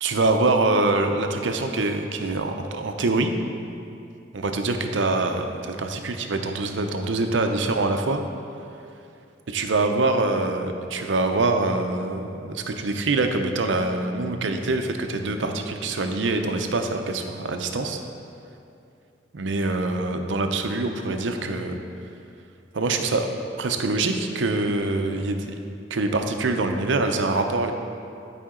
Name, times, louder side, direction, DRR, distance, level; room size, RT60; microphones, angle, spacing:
voice 1, 0.0-3.3 4.3-8.2 9.5-18.0 19.3-21.8 22.7-23.3 23.6-25.5 25.9-27.7, right 2 dB, 80° right, 5 dB, 0.6 m, -24 dB
11.5 x 5.0 x 3.8 m, 2.6 s
head